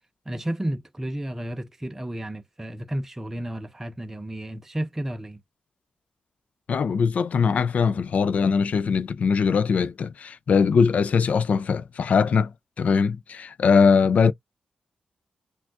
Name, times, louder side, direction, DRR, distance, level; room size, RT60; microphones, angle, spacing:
voice 1, 0.3-5.4, right 1 dB, 15° right, 0.5 m, -32 dB
voice 2, 6.7-14.3, left 5 dB, 65° left, 0.4 m, -21 dB
6.0 x 2.3 x 2.4 m
wide cardioid pair, 100°, 3 cm